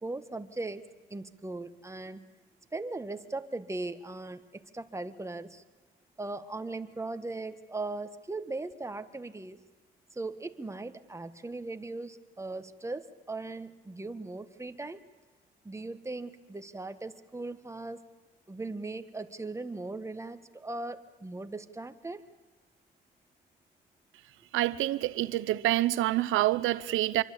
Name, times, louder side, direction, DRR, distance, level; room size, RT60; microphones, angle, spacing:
voice 1, 0.0-0.8 1.1-2.2 2.7-5.6 6.2-9.6 10.1-15.0 15.6-18.0 18.5-22.2, right 2 dB, 15° right, 1.7 m, -38 dB
voice 2, 24.5-27.2, right 15 dB, 90° right, 0.7 m, -27 dB
25.5 x 23.5 x 8.6 m
cardioid pair, 90°, 20 cm